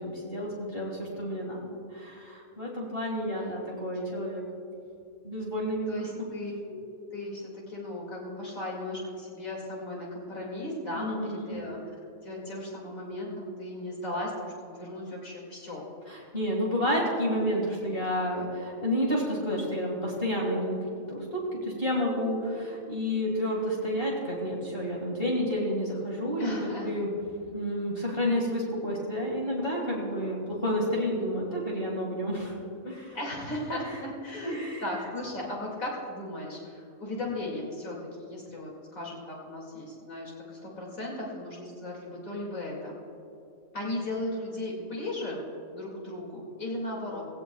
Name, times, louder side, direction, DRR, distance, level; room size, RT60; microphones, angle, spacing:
voice 1, 0.0-4.4 5.2-6.3 10.9-11.6 16.1-20.8 21.1-27.1 27.5-33.2 34.4-34.8, equal, 40° left, -3 dB, 2.1 m, -30 dB
voice 2, 3.3-3.8 5.9-6.8 7.1-11.8 12.2-15.9 26.4-26.9 33.1-43.0 43.7-45.4 45.7-47.2, left 1 dB, 75° left, -3 dB, 2.8 m, -36 dB
17.5 x 17.5 x 2.3 m, 2.6 s
omnidirectional pair, 1.5 m